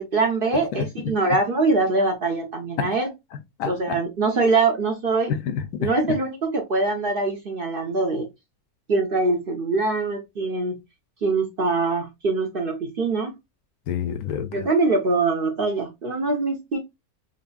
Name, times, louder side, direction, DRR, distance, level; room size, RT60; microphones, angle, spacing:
voice 1, 0.0-3.1 3.7-5.3 5.8-8.3 8.9-10.8 11.2-13.3 14.5-16.8, right 3 dB, 45° right, 0.8 m, -23 dB
voice 2, 0.7-1.2 2.8-2.9 3.6-4.0 5.3-6.2 13.9-14.7, left 8 dB, 80° left, 1.1 m, -28 dB
5.1 x 2.7 x 2.2 m
omnidirectional pair, 1.6 m